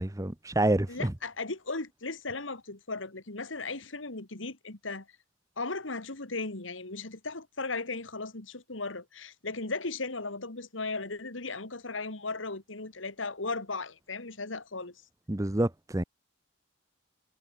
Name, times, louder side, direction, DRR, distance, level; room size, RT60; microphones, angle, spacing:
voice 1, 0.0-1.1 15.3-16.0, right 1 dB, 15° right, 0.8 m, -28 dB
voice 2, 0.9-5.1 5.6-15.0, left 3 dB, 85° left, 2.5 m, -36 dB
head